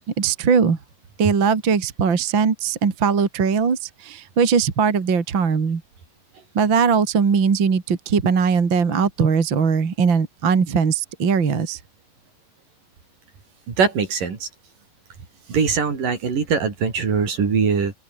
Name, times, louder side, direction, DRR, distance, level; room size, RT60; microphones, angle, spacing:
voice 1, 0.2-0.8 1.2-5.8 6.5-11.8, right 6 dB, 35° right, 2.9 m, -20 dB
voice 2, 13.7-14.5 15.5-17.9, right 5 dB, 65° right, 6.0 m, -21 dB
open air
omnidirectional pair, 4.2 m